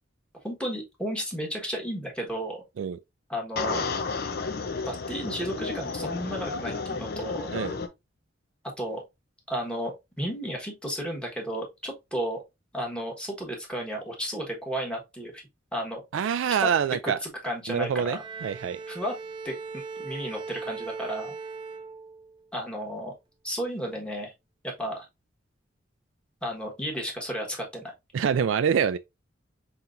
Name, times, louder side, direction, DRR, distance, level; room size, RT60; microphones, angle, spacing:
voice 1, 0.4-2.6 3.3-3.8 4.8-7.5 8.8-9.0 9.5-12.4 12.7-15.4 15.7-16.0 16.6-16.7 17.0-18.2 18.9-19.2 19.4-21.3 22.5-23.1 23.4-24.3 24.6-25.1 26.4-27.9, equal, 5° left, 1.3 m, -33 dB
sound 1, 3.6-7.9, left 4 dB, 55° left, 0.6 m, -32 dB
voice 2, 16.1-17.2 17.7-18.8 28.1-29.0, right 7 dB, 80° right, 0.3 m, -25 dB
Bowed string instrument, 18.1-22.5, right 4 dB, 25° right, 0.5 m, -39 dB
5.7 x 2.9 x 2.5 m
head